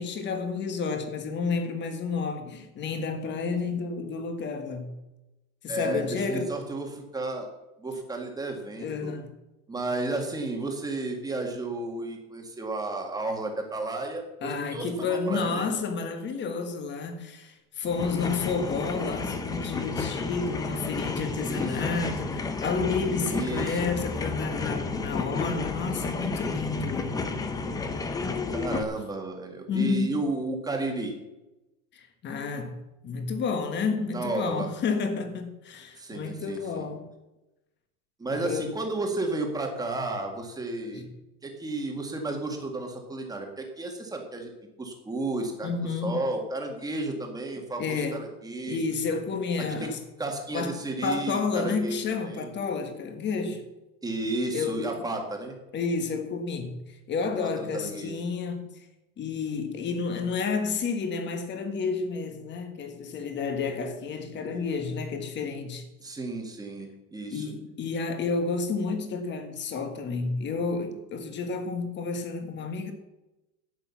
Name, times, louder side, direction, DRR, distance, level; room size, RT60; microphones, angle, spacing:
voice 1, 0.0-4.9 5.6-6.5 8.8-9.3 14.4-27.2 29.7-30.2 31.9-32.8 33.0-37.0 38.3-38.7 40.9-41.1 45.6-46.2 47.8-48.2 48.7-50.0 50.5-53.6 54.5-55.1 55.7-58.7 59.2-65.8 67.3-72.9, left 4 dB, 25° left, 1.5 m, -30 dB
voice 2, 5.7-7.5 7.8-9.1 9.7-15.7 21.4-22.1 23.3-23.9 28.5-31.1 34.1-34.7 36.0-36.9 38.2-41.0 41.4-44.5 44.8-48.8 49.6-49.9 50.2-52.5 54.0-55.6 57.4-58.3 66.0-67.5, right 2 dB, 10° right, 1.7 m, -33 dB
sound 1, 17.8-28.8, left 3 dB, 10° left, 0.4 m, -32 dB
11.0 x 8.1 x 7.0 m
supercardioid pair, 160°, 44 cm